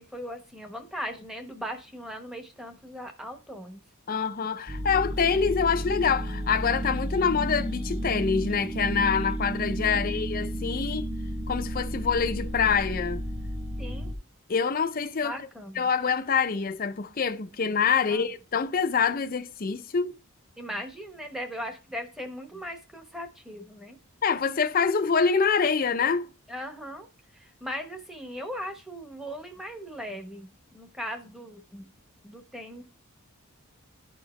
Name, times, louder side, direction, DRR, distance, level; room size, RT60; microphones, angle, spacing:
voice 1, 0.1-3.8 9.9-10.3 13.8-14.1 15.2-15.8 18.1-18.2 20.6-24.0 26.5-27.1 27.3-31.9 32.2-32.8, equal, ahead, 1.0 m, -38 dB
voice 2, 4.1-11.1 11.5-13.2 14.5-15.4 15.8-20.1 24.2-26.3, left 6 dB, 40° left, 0.5 m, -25 dB
sound 1, 4.7-14.1, equal, 35° right, 0.9 m, -32 dB
11.5 x 4.6 x 3.1 m
head